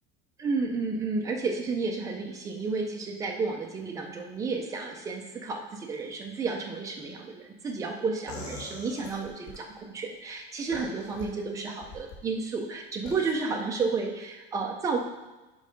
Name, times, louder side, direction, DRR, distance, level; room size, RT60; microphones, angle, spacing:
voice 1, 0.4-15.0, right 4 dB, 10° right, 1 dB, 0.5 m, -32 dB
sound 1, 8.3-9.6 10.7-11.3 11.8-12.2 13.1-13.3, left 3 dB, 65° left, 2.4 m, -42 dB
5.4 x 5.3 x 5.1 m, 1.1 s
cardioid pair, 180°, 30 cm